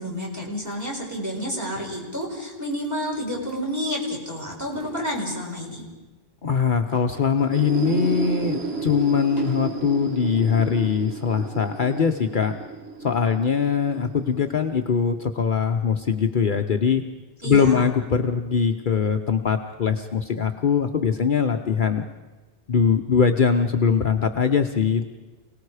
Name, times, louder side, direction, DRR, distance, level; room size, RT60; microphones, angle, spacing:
voice 1, 0.0-5.8 17.4-17.9, equal, 15° right, -3 dB, 5.2 m, -30 dB
sound 1, 4.7-5.3 6.9-7.5 7.9-8.0 9.1-9.9, equal, 40° right, 5.5 m, -44 dB
voice 2, 6.4-12.6 13.0-17.0 17.4-22.0 22.7-25.1, left 6 dB, 55° left, 5 dB, 0.9 m, -22 dB
sound 2, 7.4-15.0, right 4 dB, 85° right, 1.6 m, -32 dB
28.5 x 18.5 x 4.9 m, 1.2 s
omnidirectional pair, 1.0 m